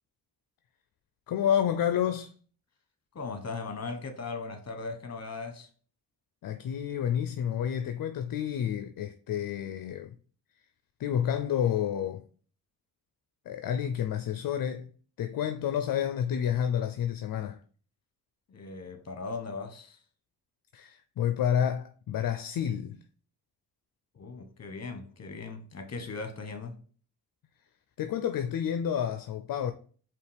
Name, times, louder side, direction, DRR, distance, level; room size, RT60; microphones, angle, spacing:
voice 1, 1.3-2.3 6.4-10.2 11.0-12.3 13.5-14.9 15.2-17.6 20.7-23.0 28.0-29.7, left 9 dB, 65° left, 0.5 m, -29 dB
voice 2, 3.1-5.7 18.5-20.0 24.1-26.8, left 4 dB, 45° left, 1.1 m, -38 dB
4.8 x 3.0 x 3.3 m
cardioid pair, 75°, 36 cm